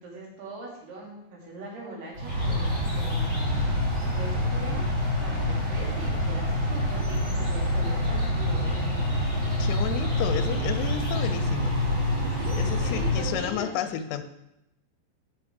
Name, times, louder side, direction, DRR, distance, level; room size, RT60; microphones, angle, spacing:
voice 1, 0.0-3.6 4.1-4.8 5.2-9.1 12.1-14.0, right 2 dB, 75° right, -4 dB, 4.6 m, -40 dB
sound 1, 2.1-13.5, left 1 dB, 30° right, 4.6 m, -26 dB
voice 2, 9.6-11.8 12.6-14.2, left 9 dB, 85° left, 10 dB, 2.8 m, -32 dB
12.5 x 6.9 x 3.5 m, 0.86 s
omnidirectional pair, 4.7 m